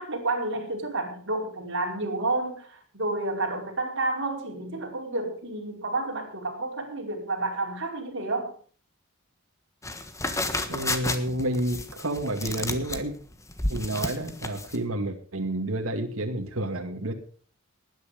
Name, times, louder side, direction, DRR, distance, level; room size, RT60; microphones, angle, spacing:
voice 1, 0.0-8.5, right 2 dB, 60° right, 0 dB, 5.3 m, -30 dB
sound 1, 9.8-14.8, left 2 dB, 15° left, 1.4 m, -31 dB
voice 2, 10.7-13.1 13.7-17.1, right 1 dB, 75° right, 3 dB, 2.3 m, -30 dB
19.5 x 10.0 x 5.2 m, 0.43 s
head